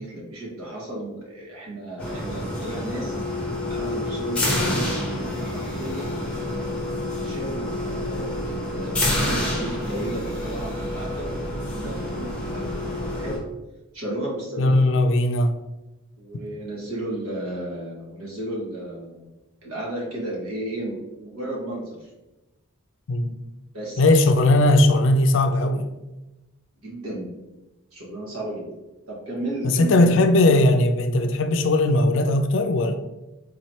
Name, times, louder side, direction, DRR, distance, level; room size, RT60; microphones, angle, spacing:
voice 1, 0.0-3.2 3.7-6.1 7.2-12.6 13.1-13.3 13.9-14.8 16.2-19.3 19.6-22.1 23.7-24.1 26.8-27.3 27.9-28.7 29.1-30.4, right 1 dB, 90° right, 1.4 m, -33 dB
sound 1, 2.0-13.4, left 1 dB, 5° left, 0.7 m, -28 dB
voice 2, 14.6-15.5 23.1-23.3 24.0-25.9 29.6-32.9, left 2 dB, 60° left, 0.4 m, -18 dB
3.9 x 3.1 x 2.8 m
head